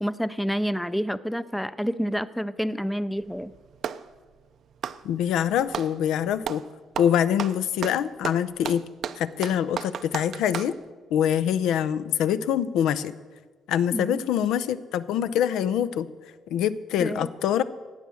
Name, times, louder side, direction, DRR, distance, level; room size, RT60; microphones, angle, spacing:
voice 1, 0.0-3.5 13.9-14.2 17.0-17.3, equal, 5° left, 15 dB, 0.4 m, -28 dB
Clapping, 3.2-4.1 4.7-6.0 6.4-6.7 6.9-10.8, right 8 dB, 55° right, 0.5 m, -34 dB
voice 2, 5.0-6.6 7.0-8.8 9.2-10.7 11.1-13.1 13.7-16.1 16.5-17.6, left 9 dB, 85° left, 15 dB, 0.6 m, -24 dB
16.5 x 9.5 x 7.1 m, 1.4 s
cardioid pair, 140°, 0 cm